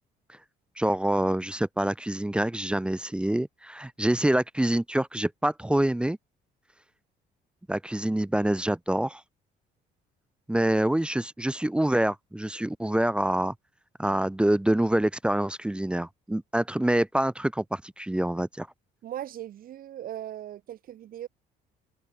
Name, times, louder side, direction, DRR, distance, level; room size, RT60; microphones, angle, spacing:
voice 1, 0.8-6.2 7.7-9.2 10.5-13.5 14.0-18.7, right 1 dB, 5° right, 0.7 m, -26 dB
voice 2, 19.0-21.3, right 11 dB, 60° right, 1.9 m, -38 dB
cardioid pair, 110°, 17 cm